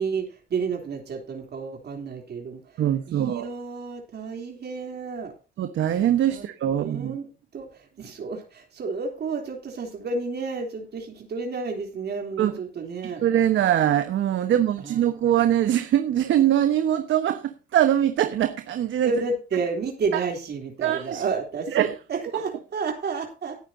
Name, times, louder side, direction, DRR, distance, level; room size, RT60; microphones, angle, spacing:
voice 1, 0.0-5.3 6.3-7.3 7.5-13.2 14.4-14.5 14.8-15.0 19.0-23.6, right 4 dB, 55° right, 3.4 m, -31 dB
voice 2, 2.8-3.5 5.6-7.1 12.4-12.5 13.2-19.1 20.8-21.2 21.7-21.9, right 11 dB, 75° right, 1.3 m, -22 dB
18.5 x 9.5 x 2.8 m
cardioid pair, 90°, 20 cm